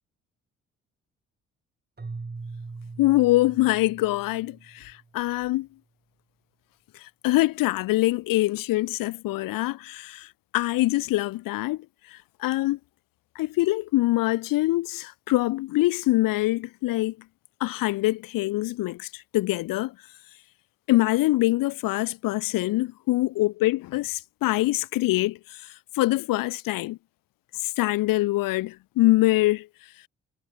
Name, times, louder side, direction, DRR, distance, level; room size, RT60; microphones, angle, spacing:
Keyboard (musical), 2.0-5.1, right 3 dB, 25° right, 5.3 m, -41 dB
voice 1, 3.0-5.7 7.0-10.3 10.5-11.8 12.1-12.8 13.3-17.2 17.6-19.9 20.9-25.7 25.9-27.0 27.8-29.7, left 18 dB, 60° left, 1.0 m, -24 dB
figure-of-eight pair, 40°, 38 cm